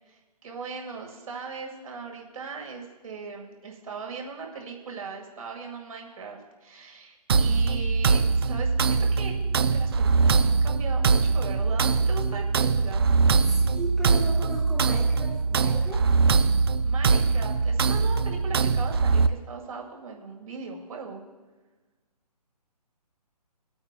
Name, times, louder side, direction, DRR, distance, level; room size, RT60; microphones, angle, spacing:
voice 1, 0.1-13.1 16.8-21.2, right 4 dB, 55° right, 1 dB, 2.1 m, -39 dB
sound 1, 7.3-19.3, right 4 dB, 40° right, 0.4 m, -22 dB
voice 2, 13.4-16.1, right 1 dB, ahead, -6 dB, 0.7 m, -36 dB
24.0 x 8.6 x 2.4 m, 1.2 s
hypercardioid pair, 150°, 21 cm